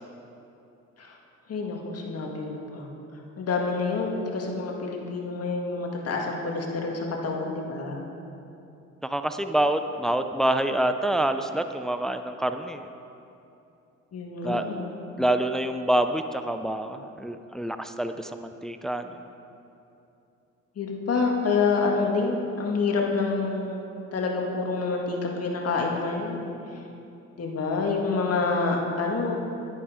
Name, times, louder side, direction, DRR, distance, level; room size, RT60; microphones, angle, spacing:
voice 1, 1.5-2.9 3.4-8.0 14.1-14.9 20.8-23.9 24.1-26.5 27.4-29.3, left 4 dB, 55° left, 0 dB, 1.9 m, -27 dB
voice 2, 9.0-12.9 14.4-14.6 15.2-19.2, right 1 dB, ahead, 8 dB, 0.5 m, -26 dB
11.0 x 11.0 x 5.0 m, 2.7 s
cardioid pair, 90°, 30 cm